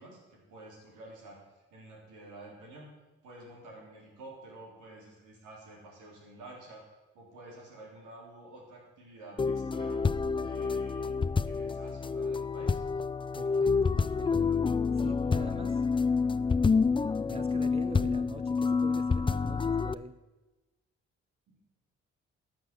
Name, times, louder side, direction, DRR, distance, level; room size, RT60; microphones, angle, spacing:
voice 1, 0.0-2.9 3.2-6.8 7.2-10.0 10.4-11.1 11.4-12.8 21.5-21.6, right 2 dB, 90° right, -2 dB, 3.4 m, -50 dB
sound 1, 9.4-19.9, left 5 dB, 20° left, 0.4 m, -28 dB
voice 2, 13.3-14.5 14.9-15.9 17.2-20.1, right 3 dB, 20° right, 11 dB, 0.8 m, -44 dB
11.5 x 6.1 x 7.4 m, 1.1 s
supercardioid pair, 60°, 29 cm